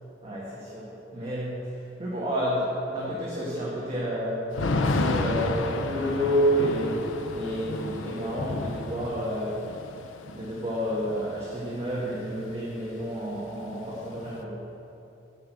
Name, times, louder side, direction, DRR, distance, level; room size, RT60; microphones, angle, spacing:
voice 1, 0.2-9.6 10.3-14.6, equal, 30° right, -7 dB, 1.5 m, -30 dB
Thunder / Rain, 4.5-12.4 12.7-12.8 13.1-14.4, left 2 dB, 90° left, 0.6 m, -32 dB
10.5 x 4.9 x 7.8 m, 2.8 s
head